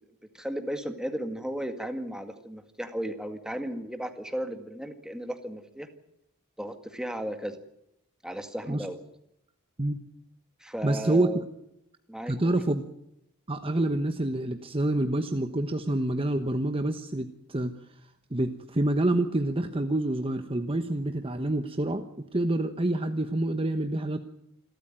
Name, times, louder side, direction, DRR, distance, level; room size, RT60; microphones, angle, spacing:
voice 1, 0.3-5.9 6.6-7.6 8.2-9.0 10.6-11.4 12.1-12.5, equal, 5° right, 7 dB, 2.0 m, -35 dB
voice 2, 10.8-11.3 12.3-12.8 13.5-17.7 18.3-24.2, right 1 dB, 25° right, 7 dB, 1.1 m, -27 dB
27.5 x 13.5 x 8.8 m, 0.80 s
head